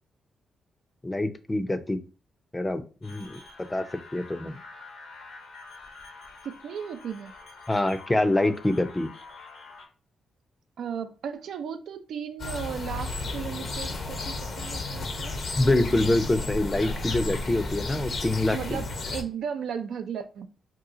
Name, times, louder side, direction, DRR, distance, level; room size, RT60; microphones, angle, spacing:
voice 1, 1.0-2.0 2.5-3.4 3.7-3.8 4.1-4.6 7.7-9.1 15.6-18.8, left 2 dB, 20° left, 0.5 m, -25 dB
sound 1, 3.0-9.9, left 3 dB, 80° left, 1.0 m, -47 dB
voice 2, 6.4-7.3 10.8-15.4 18.5-20.5, right 7 dB, 75° right, 0.4 m, -35 dB
sound 2, 12.4-19.2, left 2 dB, 55° left, 0.7 m, -33 dB
2.8 x 2.3 x 3.6 m
cardioid pair, 65°, 0 cm